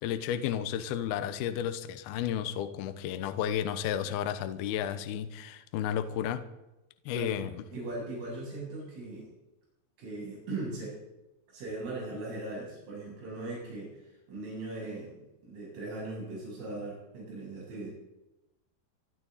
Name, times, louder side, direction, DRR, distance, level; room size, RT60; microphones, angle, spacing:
voice 1, 0.0-6.4 7.1-7.5, left 10 dB, 75° left, 10 dB, 2.3 m, -32 dB
voice 2, 7.7-9.3 10.0-11.0 11.5-15.1 15.4-17.9, right 2 dB, 85° right, -4 dB, 10.5 m, -39 dB
26.0 x 13.0 x 4.2 m, 0.95 s
omnidirectional pair, 5.7 m